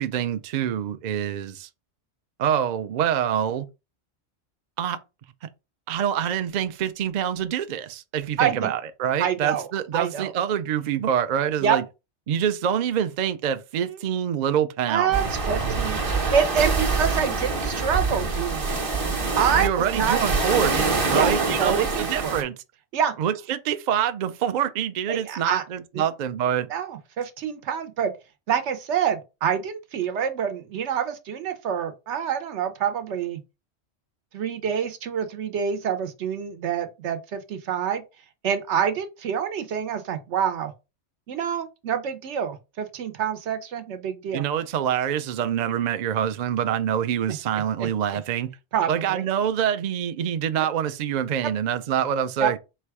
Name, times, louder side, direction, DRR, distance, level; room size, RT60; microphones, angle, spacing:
voice 1, 0.0-1.7 2.4-3.7 4.8-5.0 5.9-11.8 12.3-15.3 19.5-22.6 23.2-26.7 44.3-48.5 48.9-52.6, right 9 dB, 60° right, 0.5 m, -26 dB
voice 2, 8.4-8.7 9.2-9.7 9.9-10.3 11.6-11.8 14.9-18.8 19.4-20.2 21.1-22.4 22.9-23.1 25.1-25.6 25.9-26.0 26.7-28.1 28.5-33.4 34.3-38.0 38.4-40.7 41.3-44.4 47.3-47.4 47.8-47.9 48.7-49.2 50.5-50.7 52.4-52.5, right 8 dB, 80° right, 1.0 m, -26 dB
sound 1, 15.1-22.4, right 4 dB, 35° right, 0.8 m, -25 dB
4.1 x 2.2 x 4.6 m
omnidirectional pair, 1.2 m